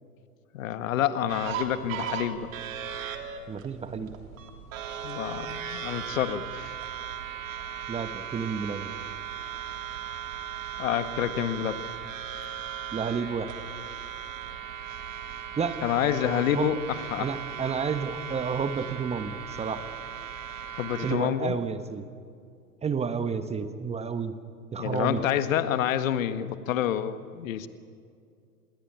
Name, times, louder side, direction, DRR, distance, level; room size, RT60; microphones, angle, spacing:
voice 1, 0.5-2.5 5.0-6.7 10.8-11.9 15.8-17.3 20.7-21.6 24.8-27.7, left 10 dB, 55° left, 10 dB, 1.8 m, -28 dB
sound 1, 1.3-21.2, right 9 dB, 55° right, 3.3 m, -37 dB
voice 2, 3.5-4.1 7.9-8.9 12.9-13.5 15.6-15.8 16.3-16.7 17.2-19.8 21.0-22.1 22.8-24.3 24.7-25.2, right 6 dB, 15° right, 10 dB, 1.3 m, -31 dB
27.5 x 21.5 x 8.9 m, 2.3 s
hypercardioid pair, 110°, 47 cm